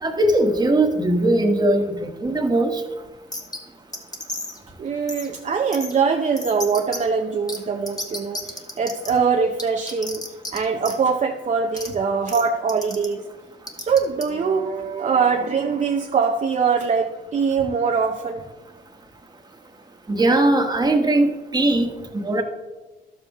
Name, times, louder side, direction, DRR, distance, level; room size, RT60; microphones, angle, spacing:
voice 1, 0.0-2.8 20.1-21.9 22.2-22.4, right 1 dB, 20° right, 4 dB, 1.4 m, -19 dB
sound 1, 3.3-3.6 3.9-4.6 5.1-5.3 5.7-5.9 6.4-7.0 7.5-7.6 7.9-9.1 9.6-10.6 10.8-11.0 11.8-11.9 12.3-12.4 12.7-13.1 13.7-14.2, left 1 dB, 20° left, 1.4 m, -31 dB
voice 2, 4.8-10.2 10.5-13.2 13.8-18.4, right 5 dB, 40° right, 2 dB, 0.7 m, -22 dB
11.5 x 7.2 x 3.6 m, 1.2 s
cardioid pair, 90°, 20 cm